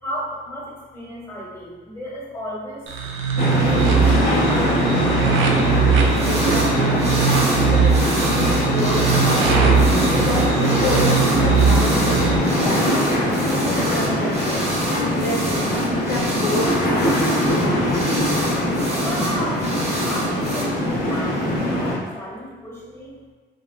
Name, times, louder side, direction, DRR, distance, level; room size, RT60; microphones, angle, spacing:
voice 1, 0.0-2.9 3.5-5.5 19.0-23.2, equal, 15° left, -7 dB, 1.4 m, -34 dB
sound 1, 2.9-12.4, right 6 dB, 75° right, 0.5 m, -20 dB
sound 2, 3.4-22.0, equal, 50° left, 0.9 m, -21 dB
sound 3, 6.1-6.7 7.0-20.6, right 1 dB, 35° right, 0.9 m, -28 dB
voice 2, 6.2-18.0, left 2 dB, 85° left, -5 dB, 0.7 m, -29 dB
4.0 x 2.2 x 2.3 m, 1.4 s
cardioid pair, 90°, 20 cm